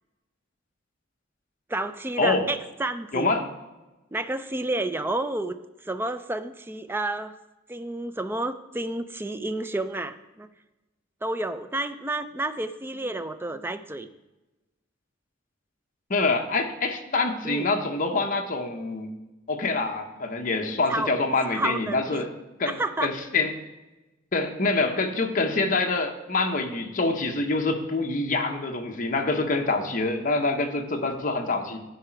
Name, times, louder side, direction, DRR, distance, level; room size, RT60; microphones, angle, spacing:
voice 1, 1.7-3.3 4.1-5.6 5.8-7.4 7.7-10.5 11.2-14.1 17.4-17.7 20.9-21.1 21.5-22.2 22.7-23.1, right 2 dB, 10° right, 11 dB, 0.3 m, -30 dB
voice 2, 3.1-3.4 16.1-19.1 19.5-22.3 22.6-23.5 24.3-31.8, left 3 dB, 45° left, 4 dB, 0.9 m, -26 dB
11.5 x 4.8 x 4.5 m, 1.1 s
head